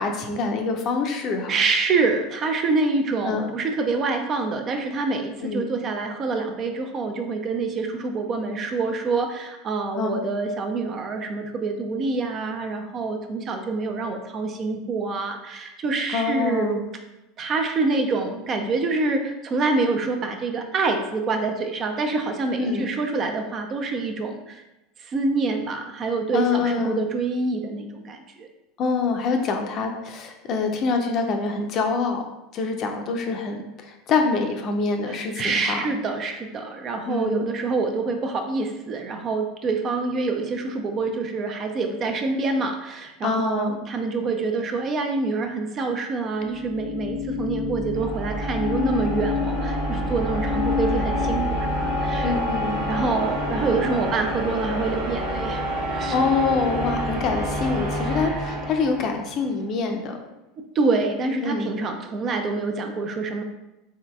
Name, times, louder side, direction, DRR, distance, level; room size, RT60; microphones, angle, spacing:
voice 1, 0.0-1.6 3.2-3.5 5.4-5.7 9.9-10.2 16.1-16.9 22.6-22.9 26.3-27.1 28.8-32.2 32.5-35.9 37.1-37.5 43.2-43.8 52.2-52.8 56.1-60.2 61.4-61.8, left 4 dB, 45° left, 4 dB, 0.5 m, -25 dB
voice 2, 1.5-16.8 17.4-24.6 25.0-28.5 35.1-52.4 52.9-55.6 55.9-56.2 58.1-58.4 60.6-63.4, right 3 dB, 35° right, 5 dB, 0.5 m, -26 dB
sound 1, 46.4-59.5, left 1 dB, 75° right, 1.1 m, -27 dB
3.9 x 3.7 x 2.2 m, 0.95 s
figure-of-eight pair, 75°, 0 cm